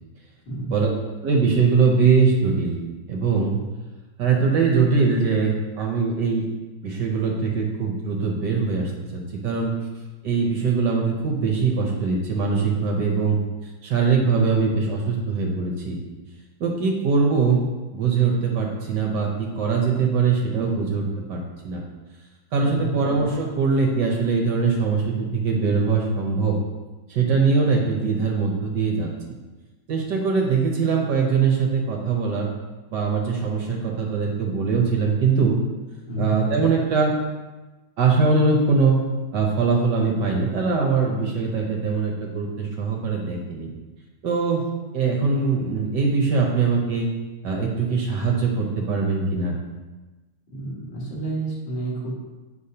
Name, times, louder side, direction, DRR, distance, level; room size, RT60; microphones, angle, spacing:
voice 1, 1.2-2.7 3.1-3.5 4.2-6.5 6.8-9.7 10.2-13.4 13.6-16.0 16.6-17.6 17.9-21.0 21.3-21.4 21.6-21.8 22.5-26.6 27.1-29.1 29.9-32.5 32.9-35.6 36.2-37.2 38.0-39.0 39.3-43.7 44.2-44.7 44.9-47.1 47.4-49.6, right 5 dB, 65° right, 0 dB, 1.3 m, -22 dB
voice 2, 36.1-36.4 50.5-52.1, right 1 dB, 60° left, -5 dB, 2.3 m, -30 dB
8.0 x 5.2 x 2.8 m, 1.2 s
omnidirectional pair, 2.3 m